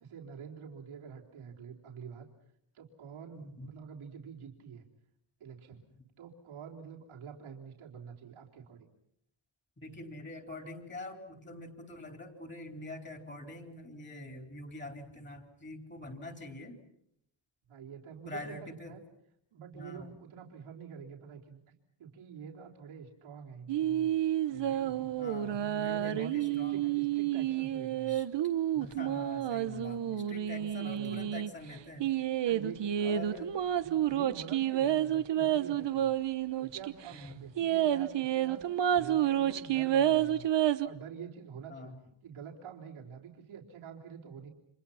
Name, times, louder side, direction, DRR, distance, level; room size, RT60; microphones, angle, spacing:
voice 1, 0.0-2.3 2.7-4.9 5.4-5.8 6.2-8.9 17.7-19.0 19.5-21.7 22.0-24.1 24.5-28.2 30.6-31.3 32.4-33.4 33.8-36.1 36.6-40.5 40.8-42.0 42.2-44.5, right 7 dB, 90° right, 0 dB, 3.8 m, -47 dB
voice 2, 3.3-3.7 9.8-16.8 18.3-19.0 19.7-20.1 25.2-27.0 28.1-28.2 28.7-32.1 33.0-33.5 37.1-37.4 41.7-42.0, left 2 dB, 20° left, 5 dB, 4.1 m, -45 dB
sound 1, 23.7-31.5 32.0-36.9 37.2-37.3 37.6-40.9, right 11 dB, 60° right, 1.1 m, -30 dB
30.0 x 26.5 x 5.8 m, 0.72 s
wide cardioid pair, 140°, 48 cm